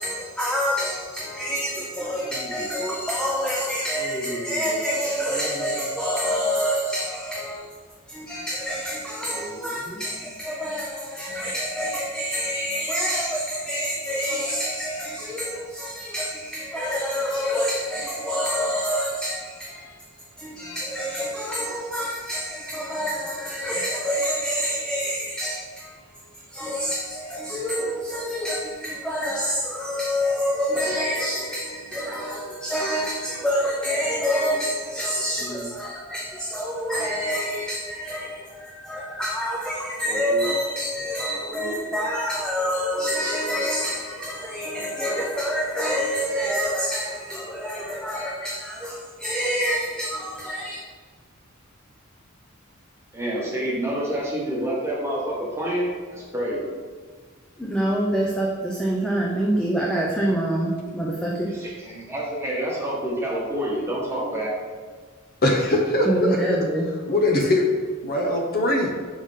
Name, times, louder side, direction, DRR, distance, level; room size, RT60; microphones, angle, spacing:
voice 1, 0.0-7.7 8.1-20.1 20.4-50.8 57.6-61.6 66.1-66.9, equal, 5° left, -4 dB, 0.5 m, -27 dB
voice 2, 2.2-2.7 4.0-4.8 5.2-5.7 9.2-10.1 35.4-35.7 40.1-40.5 41.5-41.9 53.1-56.7 61.5-64.5, right 1 dB, 10° right, -5 dB, 1.3 m, -29 dB
voice 3, 65.4-66.4 67.1-67.7 68.0-68.9, left 1 dB, 45° left, 1 dB, 0.7 m, -21 dB
5.5 x 4.9 x 3.6 m, 1.5 s
head